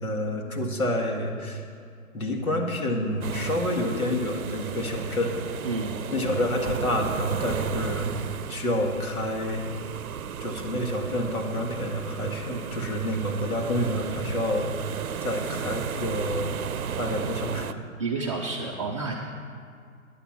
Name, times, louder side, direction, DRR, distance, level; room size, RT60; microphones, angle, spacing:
voice 1, 0.0-1.7 2.1-5.4 6.1-8.1 8.5-9.7 10.4-14.7 15.2-16.5 17.0-17.9, left 1 dB, 90° left, 1 dB, 1.8 m, -28 dB
sound 1, 3.2-17.7, right 7 dB, 80° right, 0.6 m, -34 dB
voice 2, 5.6-6.0 12.5-12.6 18.0-19.1, right 3 dB, 25° right, -2 dB, 0.4 m, -30 dB
9.9 x 7.0 x 7.3 m, 2.2 s
hypercardioid pair, 145°, 42 cm